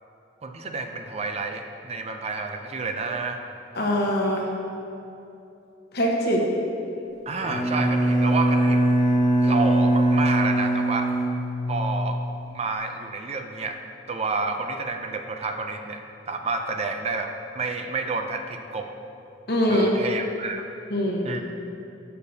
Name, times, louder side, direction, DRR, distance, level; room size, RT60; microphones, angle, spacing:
voice 1, 0.4-3.4 7.3-8.8 9.4-11.1 11.7-12.2 12.5-13.8 14.1-18.9 19.7-20.7 21.2-21.4, right 4 dB, 35° right, 5 dB, 0.4 m, -30 dB
voice 2, 3.7-4.5 5.9-6.4 19.5-19.9 20.9-21.3, equal, 55° left, -1 dB, 1.2 m, -22 dB
Bowed string instrument, 7.4-12.2, right 1 dB, ahead, 1.4 m, -21 dB
11.5 x 6.7 x 2.8 m, 2.8 s
head